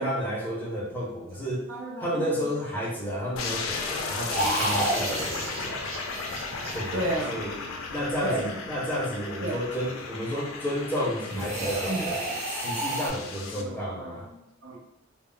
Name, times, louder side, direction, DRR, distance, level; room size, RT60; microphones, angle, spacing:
voice 1, 0.0-1.7 2.0-5.9 6.7-7.5 7.9-12.2 12.5-14.3, equal, 10° left, -5 dB, 0.5 m, -31 dB
voice 2, 1.7-2.3 2.8-3.2 3.9-4.0 4.4-4.9 6.5-7.5 8.2-8.5 9.4-9.6 11.3-11.4 11.7-12.1 13.6-14.8, right 1 dB, 75° right, -1 dB, 0.6 m, -34 dB
sound 1, 3.4-13.6, left 4 dB, 75° left, 0.4 m, -35 dB
sound 2, 4.3-7.5 11.3-13.1, right 1 dB, 30° right, 0.6 m, -30 dB
2.0 x 2.0 x 3.7 m, 0.86 s
head